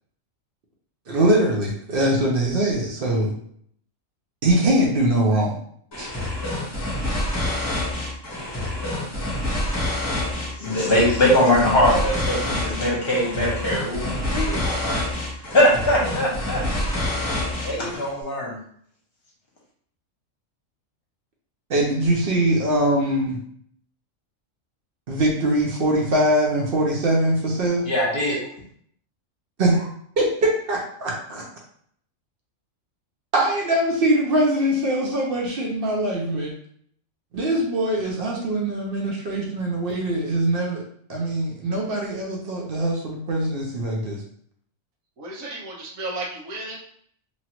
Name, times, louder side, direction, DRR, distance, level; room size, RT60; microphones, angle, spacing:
voice 1, 1.1-3.3 4.4-5.6 6.0-6.1 21.7-23.4 25.1-27.8 29.6-29.9 30.2-31.4 33.3-36.5 37.3-40.8 41.1-44.2, right 1 dB, 55° right, -2 dB, 0.8 m, -22 dB
sound 1, 5.9-18.1, left 1 dB, 20° left, 1.0 m, -27 dB
voice 2, 10.6-15.0 15.5-16.6 17.6-18.6 27.9-28.4, left 1 dB, 50° left, -3 dB, 1.1 m, -21 dB
voice 3, 45.2-46.8, right 2 dB, 90° right, -2 dB, 1.2 m, -33 dB
3.0 x 2.4 x 2.9 m, 0.64 s
omnidirectional pair, 1.3 m